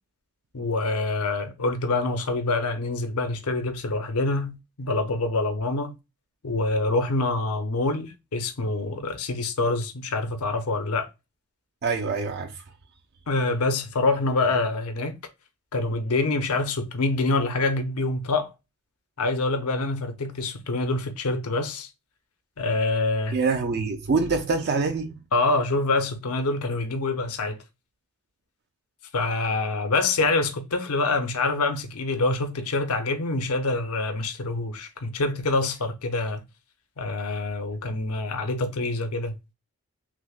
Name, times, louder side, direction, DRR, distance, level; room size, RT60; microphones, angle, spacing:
voice 1, 0.5-5.9 6.4-11.1 13.3-15.2 15.7-18.5 19.2-21.9 22.6-23.4 25.3-27.6 29.1-36.4 37.0-39.3, left 2 dB, 80° left, 0.7 m, -26 dB
voice 2, 11.8-12.5 23.3-25.1, right 4 dB, 45° right, 0.4 m, -25 dB
6.0 x 2.1 x 2.4 m
head